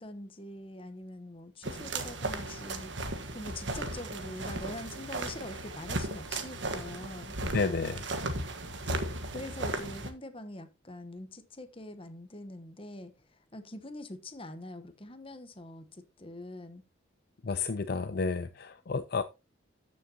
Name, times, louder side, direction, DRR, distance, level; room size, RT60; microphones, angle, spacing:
voice 1, 0.0-7.4 9.3-16.8, left 1 dB, 25° left, 1.1 m, -44 dB
sound 1, 1.6-10.1, right 2 dB, 65° right, 1.5 m, -36 dB
voice 2, 7.4-8.0 17.4-19.2, left 4 dB, 50° left, 0.5 m, -31 dB
14.0 x 6.5 x 2.9 m
head